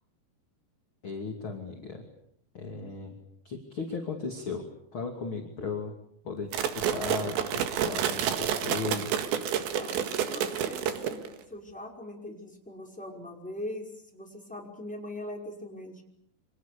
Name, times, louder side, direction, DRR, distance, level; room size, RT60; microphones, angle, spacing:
voice 1, 1.0-2.0 2.5-3.1 3.4-5.9 6.2-9.1, left 4 dB, 35° left, 3 dB, 2.8 m, -36 dB
sound 1, 6.5-11.4, right 9 dB, 85° right, 4.1 m, -29 dB
voice 2, 9.7-16.0, left 1 dB, ahead, 0 dB, 5.0 m, -41 dB
29.0 x 26.0 x 6.9 m, 0.73 s
omnidirectional pair, 4.9 m